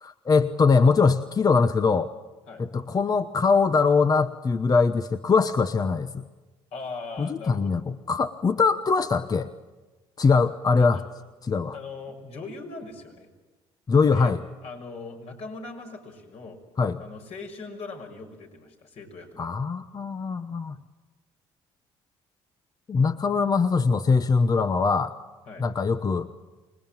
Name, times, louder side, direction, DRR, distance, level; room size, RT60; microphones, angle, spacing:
voice 1, 0.0-2.1 2.6-6.3 7.2-7.8 8.1-9.5 10.2-11.0 11.5-11.8 13.9-14.4 16.8-17.0 19.4-20.8 22.9-25.1 25.6-26.3, left 4 dB, 30° left, 10 dB, 1.0 m, -22 dB
voice 2, 6.7-7.8 10.7-11.1 11.7-13.3 14.1-14.3 14.6-16.6 17.0-19.5 25.5-25.7, left 3 dB, 60° left, 2 dB, 6.1 m, -40 dB
26.5 x 20.5 x 9.0 m, 1.2 s
supercardioid pair, 75°, 12 cm